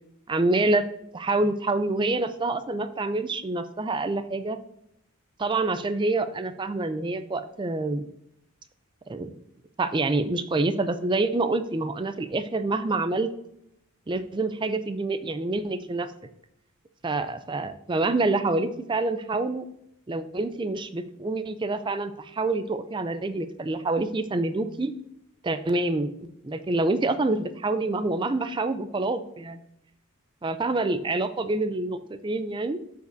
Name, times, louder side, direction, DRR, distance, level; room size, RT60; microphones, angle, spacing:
voice 1, 0.3-4.6 5.4-8.1 9.1-9.3 9.8-13.3 14.1-16.1 17.0-19.7 20.1-24.9 25.4-29.6 30.4-32.8, right 2 dB, 20° right, 11 dB, 0.4 m, -27 dB
13.0 x 5.2 x 2.6 m, 0.77 s
head